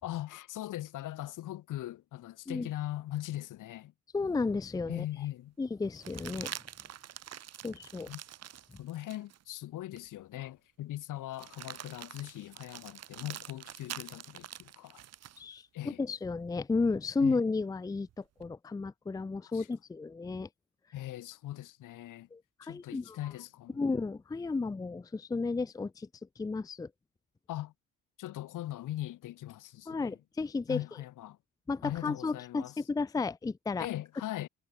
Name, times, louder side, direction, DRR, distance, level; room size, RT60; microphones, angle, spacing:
voice 1, 0.0-3.9 4.9-5.5 8.1-8.2 8.8-15.0 15.7-16.0 17.2-17.4 19.4-19.7 20.9-22.3 22.6-23.8 27.5-27.7 28.2-30.2 30.7-31.4 31.8-32.7 33.8-34.5, left 14 dB, 80° left, 4.4 m, -40 dB
voice 2, 4.1-5.1 5.6-6.6 7.6-8.1 15.4-20.5 22.3-23.2 23.7-26.1 26.4-26.9 29.9-30.8 31.7-33.9, left 4 dB, 10° left, 0.6 m, -33 dB
sound 1, 4.4-4.5 5.9-9.4 10.0-10.1 11.3-15.4 17.6-18.5, right 10 dB, 55° right, 5.4 m, -46 dB
cardioid pair, 165°, 31 cm